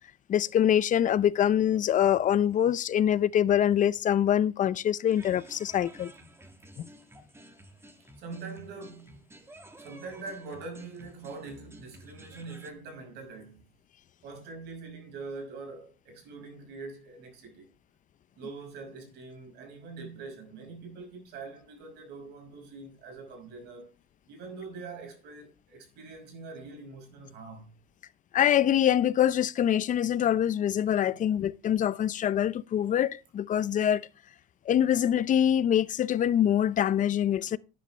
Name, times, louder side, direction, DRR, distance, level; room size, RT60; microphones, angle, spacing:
voice 1, 0.3-6.1 6.8-6.9 28.3-34.1 34.7-37.6, left 10 dB, 50° left, 0.7 m, -24 dB
sound 1, 5.1-12.7, right 1 dB, 15° right, 1.9 m, -52 dB
voice 2, 8.2-9.3 9.8-13.7 14.2-17.7 18.4-23.9 24.3-27.8 31.1-31.2, right 4 dB, 85° right, 5.6 m, -43 dB
12.5 x 10.0 x 3.3 m
cardioid pair, 110°, 17 cm